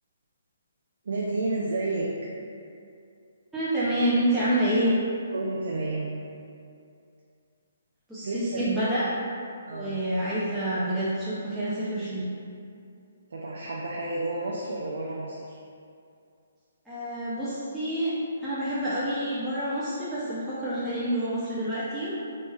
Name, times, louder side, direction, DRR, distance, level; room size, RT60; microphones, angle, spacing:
voice 1, 1.1-2.1 5.3-6.2 8.2-8.6 9.7-10.0 13.3-15.6, right 2 dB, 70° right, -4 dB, 0.4 m, -31 dB
voice 2, 3.5-4.9 8.1-9.1 9.7-12.3 16.9-18.1 18.4-22.1, right 1 dB, 5° right, -13 dB, 0.4 m, -28 dB
3.0 x 3.0 x 2.2 m, 2.4 s
hypercardioid pair, 160°, 0 cm